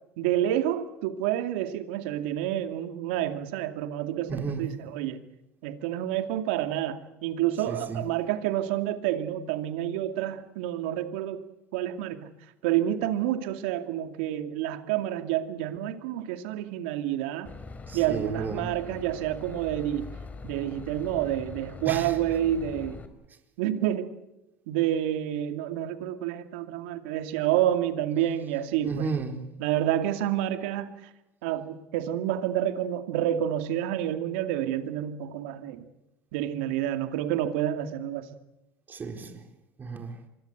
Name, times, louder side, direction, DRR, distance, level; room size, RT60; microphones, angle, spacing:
voice 1, 0.2-5.2 5.6-11.4 11.7-12.3 12.6-17.5 17.9-20.1 20.4-23.0 23.6-24.2 24.7-29.1 29.6-31.1 31.4-35.9 36.3-38.3, right 12 dB, 80° right, 2.5 m, -29 dB
voice 2, 4.3-4.6 7.7-8.0 17.9-18.7 21.9-22.1 28.8-29.4 38.9-39.4 39.8-40.2, right 5 dB, 30° right, 4.2 m, -33 dB
Boat Water vehicle / Engine, 17.5-23.1, left 4 dB, 25° left, 3.6 m, -42 dB
25.0 x 23.0 x 8.1 m
supercardioid pair, 85°, 6 cm